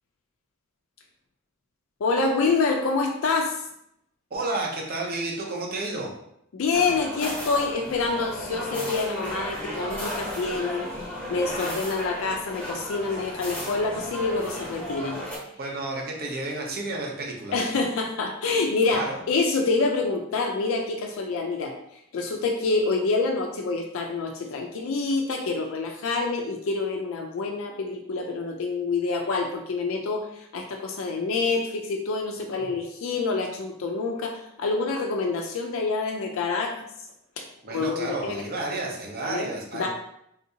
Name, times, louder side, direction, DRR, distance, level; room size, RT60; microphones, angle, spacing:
voice 1, 2.0-3.6 6.5-10.9 11.3-15.2 17.5-21.7 22.1-36.9 37.4-37.5 37.7-38.4 39.2-39.9, left 3 dB, 70° left, 2 dB, 0.4 m, -27 dB
voice 2, 4.3-6.1 15.6-17.6 18.9-19.2 37.6-39.9, right 2 dB, 45° right, -1 dB, 0.7 m, -31 dB
sound 1, 6.7-15.4, equal, 10° left, 0.8 m, -34 dB
3.5 x 2.6 x 2.7 m, 0.76 s
head